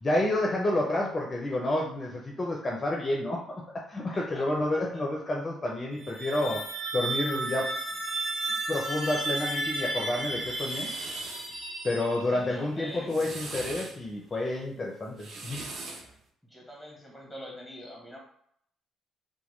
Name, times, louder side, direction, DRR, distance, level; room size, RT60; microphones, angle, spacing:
voice 1, 0.0-3.5 3.9-6.7 6.9-7.7 8.7-11.4 11.8-15.6, left 1 dB, 30° left, -1 dB, 0.5 m, -29 dB
voice 2, 4.1-5.0 12.3-13.3 16.4-18.2, equal, ahead, -1 dB, 1.2 m, -45 dB
sound 1, 5.9-12.6, right 2 dB, 40° right, 0.9 m, -33 dB
sound 2, 10.2-11.5 12.9-14.0 15.0-16.1, right 3 dB, 60° right, 0.5 m, -41 dB
2.9 x 2.2 x 3.1 m, 0.69 s
hypercardioid pair, 55°, 0 cm